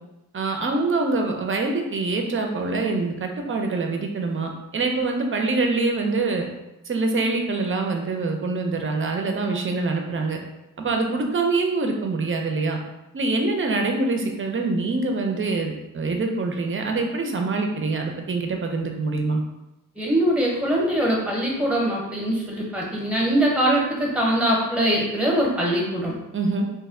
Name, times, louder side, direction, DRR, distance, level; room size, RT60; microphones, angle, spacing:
voice 1, 0.3-6.5 6.9-10.4 10.8-12.8 13.1-19.4 26.3-26.6, right 3 dB, 35° right, 3 dB, 0.4 m, -25 dB
voice 2, 20.0-26.1, right 1 dB, 5° right, -3 dB, 0.8 m, -22 dB
2.7 x 2.1 x 3.6 m, 0.95 s
wide cardioid pair, 120°, 35 cm